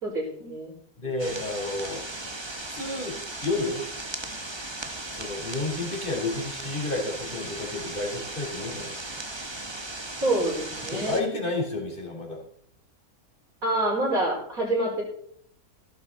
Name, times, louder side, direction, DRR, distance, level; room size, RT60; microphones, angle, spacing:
voice 1, 0.0-0.7 10.2-11.3 13.6-15.0, right 1 dB, 65° right, -2 dB, 5.8 m, -27 dB
voice 2, 1.0-2.0 2.7-3.8 5.1-9.2 10.8-12.4, left 2 dB, 35° left, -1 dB, 4.2 m, -31 dB
sound 1, 1.2-11.2, right 2 dB, 20° right, 1.4 m, -37 dB
16.0 x 12.0 x 4.1 m, 0.65 s
omnidirectional pair, 1.6 m